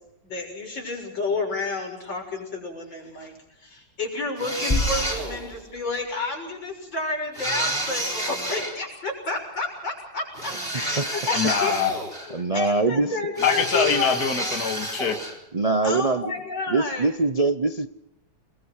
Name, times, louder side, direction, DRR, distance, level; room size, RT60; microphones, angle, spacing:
voice 1, 0.2-11.8 12.3-14.3 15.8-17.1, left 3 dB, 90° left, 1 dB, 7.4 m, -30 dB
sound 1, 4.4-5.5 7.3-8.8 10.4-12.4 13.4-15.4, right 1 dB, 30° right, 4.5 m, -30 dB
sound 2, 4.7-6.5, left 1 dB, 15° left, 2.1 m, -29 dB
voice 2, 11.3-11.9 13.4-15.3, left 6 dB, 55° left, 3 dB, 2.7 m, -24 dB
voice 3, 12.3-13.2 15.5-16.3 16.7-17.9, right 3 dB, 50° right, 10 dB, 0.4 m, -23 dB
29.5 x 22.0 x 4.8 m, 0.82 s
omnidirectional pair, 2.0 m